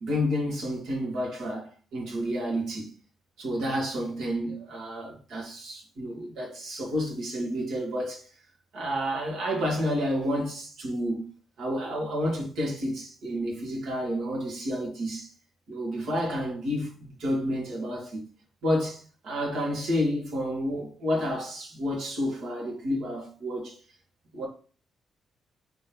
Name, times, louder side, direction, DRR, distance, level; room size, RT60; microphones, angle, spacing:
voice 1, 0.0-2.9 3.4-8.3 8.7-11.3 11.6-15.3 15.7-18.3 18.6-23.8 24.3-24.5, equal, 70° right, 1.8 m, -30 dB
5.2 x 3.3 x 3.1 m
cardioid pair, 155°, 0 cm